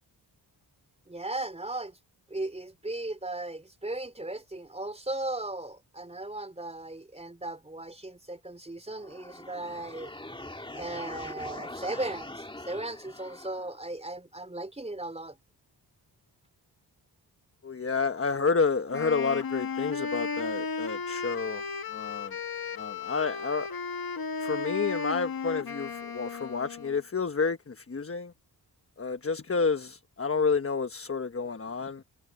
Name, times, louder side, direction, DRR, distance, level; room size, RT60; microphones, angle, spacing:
voice 1, 1.1-2.0 2.3-10.1 10.7-15.4, right 2 dB, 15° right, 3.7 m, -37 dB
sound 1, 8.9-13.9, left 1 dB, 10° left, 2.2 m, -43 dB
voice 2, 17.6-21.6 21.9-22.3 22.7-23.7 24.4-28.3 29.0-32.0, left 5 dB, 30° left, 1.2 m, -30 dB
Wind instrument woodwind instrument, 18.9-27.0, left 5 dB, 55° left, 1.7 m, -35 dB
wide cardioid pair, 85°, 43 cm